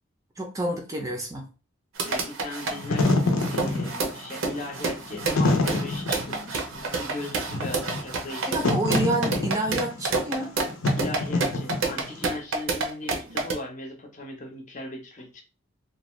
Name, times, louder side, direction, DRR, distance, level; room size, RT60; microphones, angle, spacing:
voice 1, 0.4-1.5 8.5-10.5, right 1 dB, 15° right, 2 dB, 0.4 m, -28 dB
sound 1, 2.0-13.5, right 3 dB, 80° right, 0.6 m, -29 dB
voice 2, 2.1-3.1 3.5-8.5 10.9-15.4, left 2 dB, 40° left, 3 dB, 0.6 m, -38 dB
Wind / Fire, 2.7-12.2, left 2 dB, 85° left, 0.6 m, -27 dB
2.5 x 2.2 x 3.0 m, 0.33 s
head